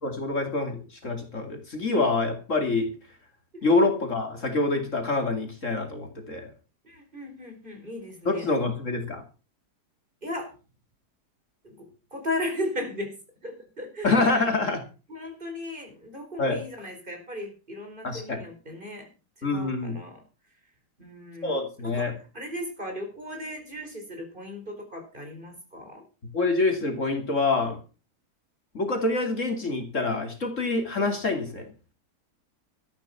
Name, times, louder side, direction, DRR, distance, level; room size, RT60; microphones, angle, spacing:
voice 1, 0.0-2.9 3.6-6.5 8.3-9.2 14.0-14.8 16.4-16.6 18.0-18.4 19.4-20.0 21.4-22.1 26.3-27.8 28.7-31.7, left 3 dB, 50° left, 4 dB, 2.9 m, -26 dB
voice 2, 6.8-8.5 10.2-10.5 11.6-13.2 13.4-14.4 15.1-19.1 19.4-20.2 21.0-21.5 21.8-26.0, left 1 dB, 30° right, 3 dB, 4.6 m, -36 dB
13.5 x 10.5 x 5.7 m, 0.35 s
omnidirectional pair, 1.7 m